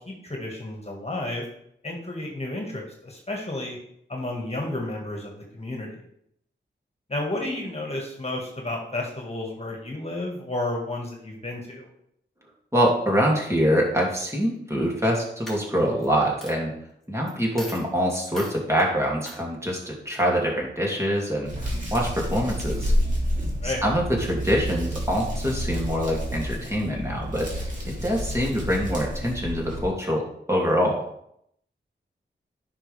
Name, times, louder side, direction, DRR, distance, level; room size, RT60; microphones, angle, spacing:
voice 1, 0.1-1.4 1.8-3.8 4.1-6.0 7.1-11.9 23.6-23.8, left 2 dB, 30° left, 0 dB, 2.0 m, -32 dB
voice 2, 12.7-16.7 17.1-22.9 23.6-27.5 27.9-30.2 30.5-31.0, equal, 15° right, -2 dB, 2.7 m, -25 dB
Coin (dropping), 14.8-15.1 15.5-16.1 16.4-16.5 17.3-17.4 17.6-17.9 18.3-18.6 19.2-19.4, equal, ahead, 3.5 m, -39 dB
Hands, 21.4-29.8, equal, 40° right, 3.0 m, -29 dB
9.9 x 5.9 x 3.5 m, 0.73 s
cardioid pair, 50°, 20 cm